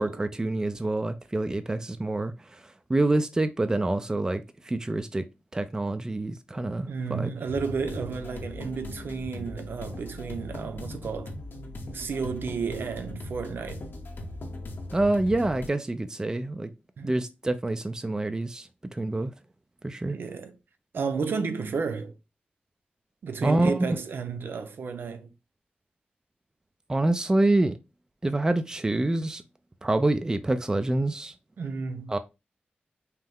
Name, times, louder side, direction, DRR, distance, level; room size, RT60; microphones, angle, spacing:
voice 1, 0.0-5.2 5.5-7.3 14.9-16.7 17.0-19.3 19.8-20.2 23.4-24.0 26.9-27.8 28.2-29.4 29.8-31.3 32.1-32.2, right 2 dB, 20° right, 0.4 m, -26 dB
voice 2, 6.9-11.3 11.9-13.8 17.0-17.1 20.0-20.5 20.9-22.1 23.2-25.3 31.6-32.1, right 5 dB, 80° right, 0.6 m, -32 dB
sound 1, 7.5-15.7, left 1 dB, 75° left, 0.9 m, -39 dB
5.5 x 2.0 x 3.5 m
wide cardioid pair, 125°, 4 cm